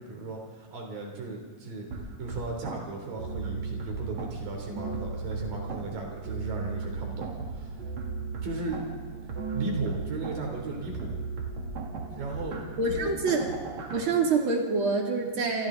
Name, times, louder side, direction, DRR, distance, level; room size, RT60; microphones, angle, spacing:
voice 1, 0.0-1.9 2.2-7.8 8.4-8.8 9.5-11.2 12.1-12.6 12.9-13.1, right 3 dB, 85° right, 1 dB, 5.0 m, -36 dB
sound 1, 1.9-14.0, right 4 dB, 55° right, 3.7 m, -36 dB
voice 2, 12.8-13.5 13.9-15.7, right 3 dB, 40° right, 0 dB, 3.3 m, -26 dB
28.5 x 23.5 x 3.9 m, 1.4 s
omnidirectional pair, 3.9 m